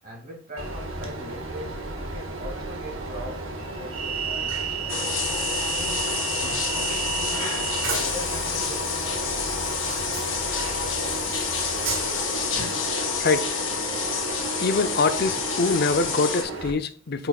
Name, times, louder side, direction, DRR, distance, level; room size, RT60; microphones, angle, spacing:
voice 1, 0.0-5.0 5.7-6.1 6.7-9.6, equal, 45° right, 2.4 m, -41 dB
Train, 0.6-16.7, right 4 dB, 90° right, 1.8 m, -32 dB
sound 1, 4.9-16.4, left 5 dB, 75° left, 1.7 m, -28 dB
voice 2, 14.6-17.3, left 3 dB, 55° left, 0.6 m, -24 dB
8.3 x 6.0 x 2.4 m
head